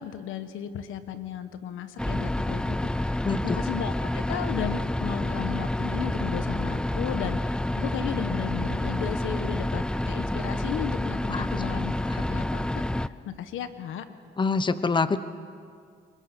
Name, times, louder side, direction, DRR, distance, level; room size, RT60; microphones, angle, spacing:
voice 1, 0.0-12.6 13.0-14.0, left 9 dB, 85° left, 10 dB, 1.3 m, -35 dB
sound 1, 2.0-13.1, left 1 dB, 5° left, 0.5 m, -28 dB
voice 2, 3.2-3.6 11.3-11.5 12.0-12.2 14.4-15.2, left 4 dB, 25° left, 13 dB, 0.9 m, -26 dB
29.5 x 21.5 x 6.2 m, 2.2 s
cardioid pair, 90°, 20 cm